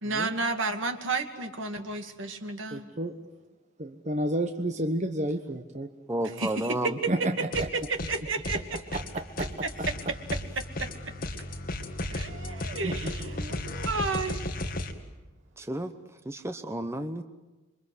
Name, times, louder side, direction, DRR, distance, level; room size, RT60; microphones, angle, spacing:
voice 1, 0.0-2.9 6.4-7.1 7.7-8.8 9.6-9.7 10.6-10.9 12.1-14.4, right 3 dB, 65° right, 6 dB, 2.5 m, -32 dB
voice 2, 2.7-3.1 3.8-5.9 6.3-6.4 6.8-7.7 8.9-9.9 12.7-13.1, right 1 dB, 35° right, 6 dB, 1.2 m, -31 dB
voice 3, 6.1-6.9 15.6-15.9 16.2-17.2, right 1 dB, 15° right, 8 dB, 1.0 m, -31 dB
sound 1, 7.5-8.2 8.4-14.9, left 1 dB, 45° left, 2.3 m, -35 dB
27.5 x 24.0 x 8.1 m, 1.1 s
head